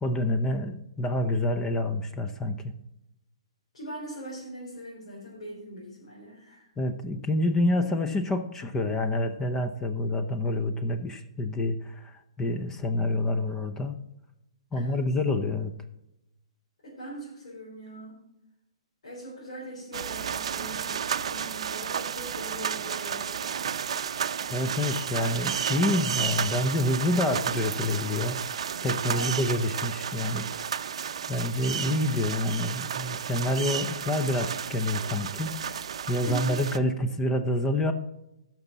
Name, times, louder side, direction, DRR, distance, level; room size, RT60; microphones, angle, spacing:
voice 1, 0.0-2.7 6.8-14.0 14.7-15.7 24.5-28.4 28.8-30.5 31.3-37.9, left 1 dB, 15° left, 7 dB, 0.7 m, -28 dB
voice 2, 3.7-6.7 14.7-15.0 16.8-18.2 19.0-23.6 29.1-29.6 36.2-36.7, right 1 dB, 75° left, -5 dB, 3.9 m, -41 dB
sound 1, 19.9-36.8, right 8 dB, 70° right, 0.5 m, -32 dB
14.5 x 6.1 x 4.1 m, 0.89 s
hypercardioid pair, 140°, 3 cm